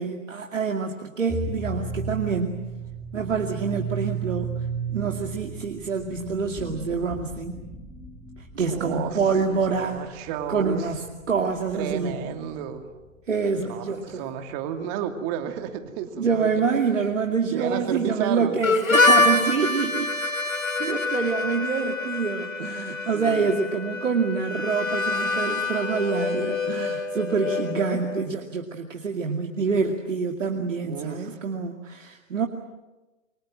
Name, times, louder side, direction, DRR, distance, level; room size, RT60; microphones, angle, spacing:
voice 1, 0.0-2.6 3.1-4.6 4.9-7.7 8.4-10.2 10.5-12.2 13.3-14.3 16.2-20.2 20.8-32.5, right 5 dB, 70° right, 3 dB, 2.5 m, -26 dB
sound 1, 1.3-12.5, right 4 dB, ahead, 2.5 m, -34 dB
voice 2, 8.7-9.2 9.5-10.9 11.7-12.9 13.7-16.5 17.5-18.6 23.1-23.5 30.9-31.3, right 9 dB, 30° right, 6 dB, 2.6 m, -32 dB
Harmonica, 18.6-28.2, left 3 dB, 90° left, 3.1 m, -25 dB
28.5 x 24.5 x 7.6 m, 1.1 s
figure-of-eight pair, 130°, 39 cm